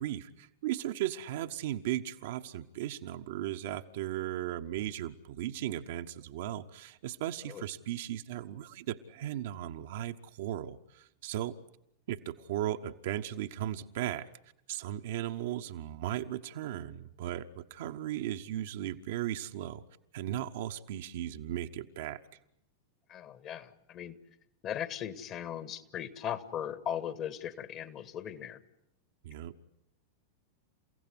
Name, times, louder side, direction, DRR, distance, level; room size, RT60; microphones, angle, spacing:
voice 1, 0.0-11.6 12.1-14.3 14.7-19.8 20.1-22.2 29.2-29.5, right 12 dB, 55° right, 7 dB, 1.1 m, -36 dB
voice 2, 23.1-24.2 24.6-28.6, left 9 dB, 35° left, 14 dB, 1.7 m, -38 dB
30.0 x 16.5 x 9.7 m, 0.79 s
figure-of-eight pair, 90°, 0 cm